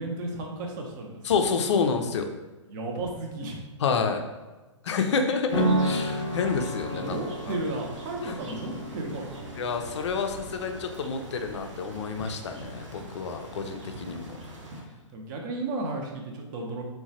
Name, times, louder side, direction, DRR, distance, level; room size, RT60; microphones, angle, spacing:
voice 1, 0.0-1.2 2.7-3.6 7.0-9.4 15.1-16.8, right 2 dB, 40° right, 1 dB, 0.5 m, -33 dB
voice 2, 1.2-2.3 3.8-4.2 4.8-7.2 7.5-7.6 8.3-8.4 9.6-14.3, left 5 dB, 65° left, 6 dB, 0.4 m, -28 dB
sound 1, 5.5-12.8, right 1 dB, 25° left, 0.7 m, -32 dB
sound 2, 5.5-14.8, right 1 dB, 70° right, 0.8 m, -44 dB
2.9 x 2.1 x 2.7 m, 1.2 s
hypercardioid pair, 125°, 16 cm